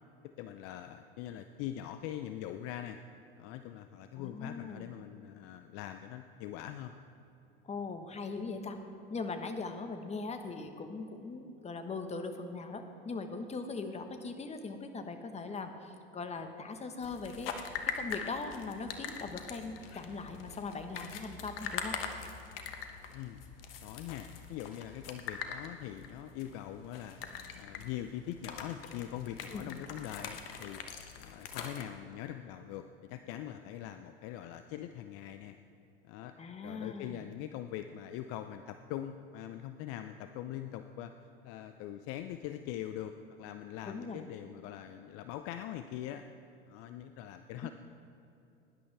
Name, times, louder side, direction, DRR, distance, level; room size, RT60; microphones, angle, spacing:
voice 1, 0.2-3.0 3.4-7.0 23.1-23.4 23.8-27.2 27.5-30.8 31.2-35.6 36.0-36.4 36.6-41.1 41.4-46.2 46.7-47.7, left 11 dB, 50° left, 9 dB, 0.6 m, -42 dB
voice 2, 4.2-4.9 7.6-8.8 9.1-22.0 29.5-29.8 36.4-37.3 43.8-44.2 47.6-47.7, left 4 dB, 20° left, 7 dB, 1.3 m, -40 dB
sound 1, 17.0-31.8, left 7 dB, 70° left, 1.2 m, -43 dB
19.0 x 11.0 x 3.4 m, 2.9 s
hypercardioid pair, 85°, 30 cm